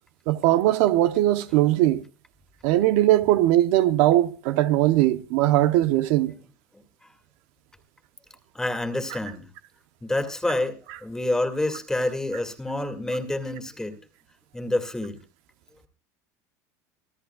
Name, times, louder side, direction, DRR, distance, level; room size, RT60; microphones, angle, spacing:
voice 1, 0.3-2.0 2.6-6.3, right 14 dB, 70° right, 0.8 m, -20 dB
voice 2, 8.5-9.5 10.0-14.0 14.5-15.2, left 1 dB, 5° left, 2.2 m, -28 dB
26.0 x 14.0 x 2.3 m
supercardioid pair, 125°, 9 cm